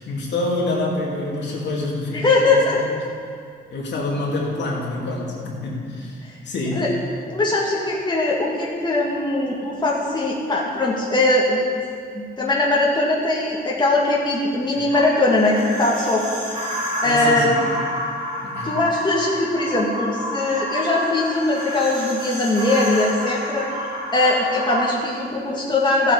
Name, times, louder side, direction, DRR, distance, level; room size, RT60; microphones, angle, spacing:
voice 1, 0.0-2.6 3.7-6.9 14.7-14.8 17.0-17.6 18.4-18.7, left 2 dB, 65° left, -3 dB, 2.7 m, -27 dB
voice 2, 2.1-2.8 6.7-6.9 7.3-11.6 12.1-17.5 18.6-23.9 24.1-26.1, left 2 dB, 20° left, -4 dB, 1.9 m, -21 dB
sound 1, 14.9-24.9, equal, 35° right, 2.9 m, -29 dB
14.5 x 8.2 x 4.8 m, 2.3 s
cardioid pair, 90°, 20 cm